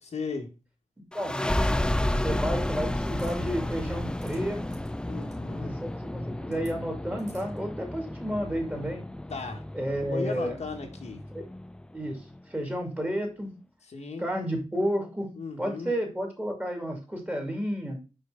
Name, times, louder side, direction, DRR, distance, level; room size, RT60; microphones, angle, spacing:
voice 1, 0.0-0.5 5.1-5.7 9.3-9.6 10.1-11.2 13.9-14.2 15.4-15.9, left 4 dB, 70° left, 3 dB, 1.4 m, -36 dB
voice 2, 1.0-1.3 2.2-4.6 5.6-9.0 9.7-10.6 11.3-11.4 11.9-12.2 12.5-13.5 14.2-15.3 15.6-18.0, equal, 15° right, 2 dB, 2.4 m, -31 dB
sound 1, 1.1-12.4, left 1 dB, 5° left, 0.3 m, -32 dB
sound 2, 3.2-3.4 4.0-4.4 4.7-4.9 5.2-5.4 6.5-6.7 7.2-7.6, right 2 dB, 90° right, 3.7 m, -52 dB
5.7 x 4.7 x 3.7 m, 0.32 s
wide cardioid pair, 90°, 12 cm